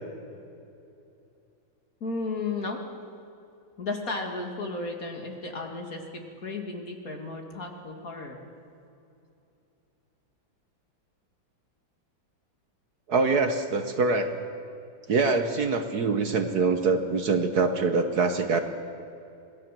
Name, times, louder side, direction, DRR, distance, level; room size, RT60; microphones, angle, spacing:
voice 1, 2.0-2.8 3.8-6.0 6.4-8.4, left 3 dB, 45° left, 2 dB, 2.6 m, -34 dB
voice 2, 13.1-14.3 15.1-18.6, right 4 dB, 55° right, 7 dB, 1.5 m, -24 dB
26.5 x 18.5 x 7.5 m, 2.7 s
omnidirectional pair, 2.1 m